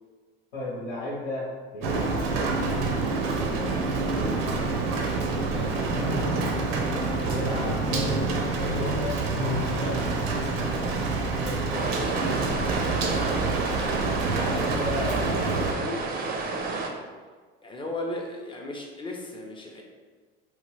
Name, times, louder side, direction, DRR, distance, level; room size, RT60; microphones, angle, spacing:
voice 1, 0.5-2.3 3.1-4.4 7.1-8.2 8.6-9.1 11.4-12.4 14.2-16.0, left 1 dB, 75° left, -9 dB, 1.1 m, -35 dB
Rain, 1.8-15.7, right 3 dB, 80° right, 0.5 m, -27 dB
Piano, 5.9-11.8, left 2 dB, 55° left, 0.9 m, -35 dB
voice 2, 9.8-10.1 13.0-13.3 17.6-19.8, left 1 dB, 15° left, 0 dB, 0.5 m, -36 dB
sound 1, 11.7-16.9, right 3 dB, 30° right, 0.5 m, -30 dB
3.0 x 2.2 x 3.0 m, 1.4 s
hypercardioid pair, 80°, 29 cm